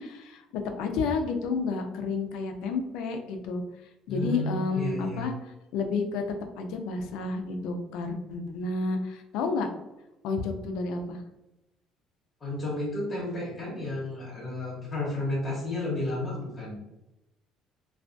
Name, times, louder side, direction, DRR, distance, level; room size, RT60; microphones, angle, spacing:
voice 1, 0.0-3.6 4.1-6.2 6.6-9.7 10.2-11.2, left 4 dB, 80° left, 5 dB, 0.4 m, -31 dB
voice 2, 4.1-5.2 12.4-16.8, left 2 dB, 35° left, -6 dB, 0.8 m, -32 dB
2.3 x 2.2 x 2.5 m, 0.94 s
cardioid pair, 115°, 0 cm